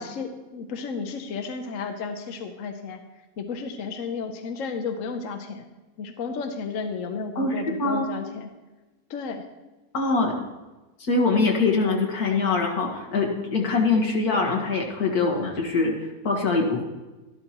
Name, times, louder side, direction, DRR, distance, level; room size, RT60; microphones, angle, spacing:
voice 1, 0.0-3.0 3.4-5.6 6.0-8.5 9.1-9.5, left 5 dB, 65° left, 5 dB, 1.1 m, -33 dB
voice 2, 9.9-10.4 11.0-15.9 16.2-16.8, left 3 dB, 90° left, 0 dB, 2.1 m, -23 dB
12.5 x 12.5 x 2.9 m, 1.2 s
omnidirectional pair, 1.5 m